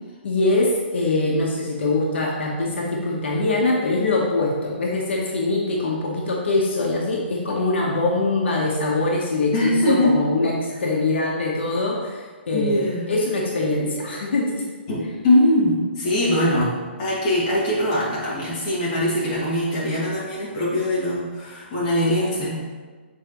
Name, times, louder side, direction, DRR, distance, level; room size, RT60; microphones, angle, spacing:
voice 1, 0.2-14.6, left 2 dB, 70° left, -2 dB, 1.1 m, -23 dB
voice 2, 9.5-10.2 12.5-13.1 14.9-22.5, left 1 dB, 25° left, -7 dB, 2.0 m, -22 dB
7.5 x 4.7 x 3.1 m, 1.4 s
hypercardioid pair, 170°, 6 cm